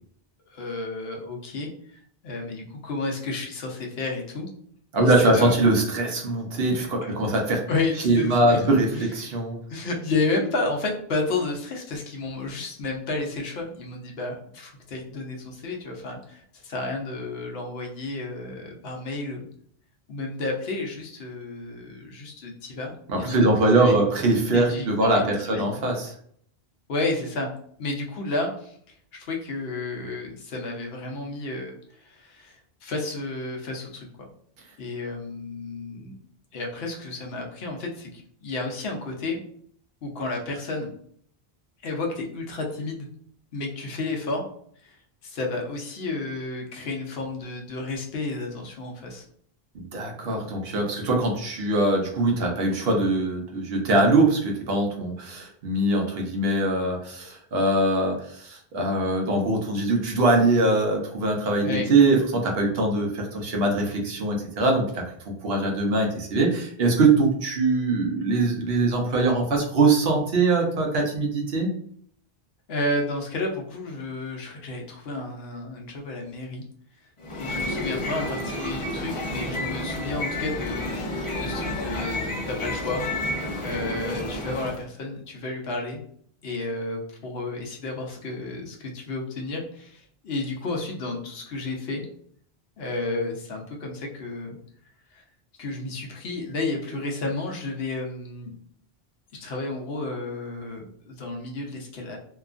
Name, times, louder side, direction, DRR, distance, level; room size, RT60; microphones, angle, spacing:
voice 1, 0.5-4.5 5.0-5.5 7.0-7.1 7.7-8.6 8.9-9.1 9.7-19.5 20.1-24.0 24.5-25.7 26.9-27.5 27.8-28.8 29.1-34.3 34.8-36.2 36.5-39.4 40.0-40.9 41.8-43.1 43.5-44.4 44.8-45.0 45.2-49.2 61.6-61.9 72.7-76.7 77.3-83.0 83.6-86.0 86.4-92.1 92.8-94.6 95.1-95.2 95.6-98.6 99.3-102.2, left 2 dB, 75° left, 1 dB, 0.9 m, -31 dB
voice 2, 4.9-7.6 8.0-9.6 23.1-26.1 49.7-65.0 65.4-71.7, right 2 dB, 70° right, 1 dB, 0.9 m, -22 dB
sound 1, 77.2-84.8, left 1 dB, 40° left, 0.5 m, -30 dB
2.8 x 2.4 x 2.4 m, 0.62 s
omnidirectional pair, 1.1 m